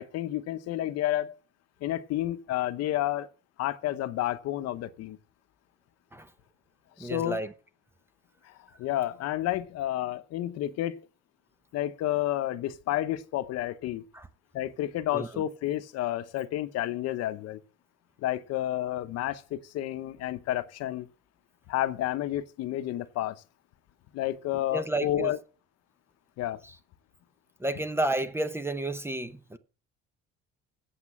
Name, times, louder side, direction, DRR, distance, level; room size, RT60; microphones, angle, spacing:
voice 1, 0.0-1.4 1.8-3.3 3.6-5.2 7.0-7.4 8.5-11.1 11.7-14.0 14.5-17.6 18.2-21.1 21.7-23.4 24.1-25.4 26.4-26.6, left 13 dB, 60° left, 0.9 m, -30 dB
voice 2, 7.0-7.5 14.1-14.3 15.1-15.4 24.7-25.3 27.6-29.6, right 2 dB, 10° right, 0.7 m, -31 dB
8.4 x 7.9 x 7.2 m
cardioid pair, 140°, 29 cm